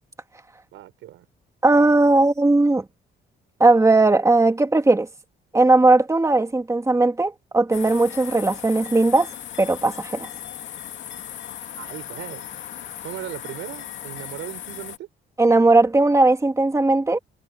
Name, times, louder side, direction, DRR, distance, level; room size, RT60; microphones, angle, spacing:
voice 1, 0.7-1.3 11.8-12.5 13.0-15.1, right 14 dB, 85° right, 5.4 m, -37 dB
voice 2, 1.6-2.8 3.6-5.1 5.5-9.3 9.6-10.3 15.4-17.2, right 2 dB, 15° right, 2.2 m, -18 dB
sound 1, 7.7-15.0, left 10 dB, 70° left, 2.4 m, -37 dB
cardioid pair, 90°, 20 cm